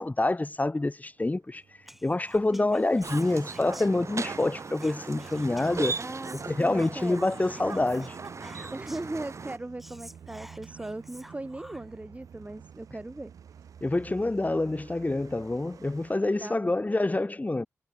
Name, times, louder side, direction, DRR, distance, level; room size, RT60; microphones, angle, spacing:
voice 1, 0.0-1.6 2.0-6.0 6.5-8.2 13.8-17.7, left 2 dB, 30° left, 1.9 m, -27 dB
sound 1, 1.1-16.2, right 8 dB, 90° right, 4.7 m, -51 dB
Whispering, 1.8-4.4 4.7-9.2 9.5-9.6 9.8-12.0, equal, 5° right, 2.6 m, -50 dB
sound 2, 3.0-9.6, right 4 dB, 60° right, 3.9 m, -38 dB
voice 2, 6.0-7.2 8.7-13.3 16.4-16.7, right 2 dB, 25° right, 1.6 m, -39 dB
cardioid pair, 45°, 6 cm